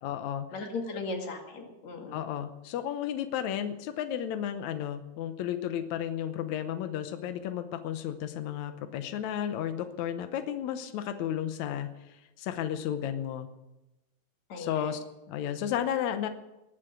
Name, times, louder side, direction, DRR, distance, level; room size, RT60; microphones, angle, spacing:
voice 1, 0.0-0.5 2.1-13.5 14.6-16.3, left 10 dB, 85° left, 9 dB, 1.6 m, -33 dB
voice 2, 0.5-2.2 14.5-14.9, left 3 dB, 50° left, 2 dB, 3.1 m, -37 dB
20.5 x 7.5 x 7.9 m, 0.98 s
omnidirectional pair, 4.5 m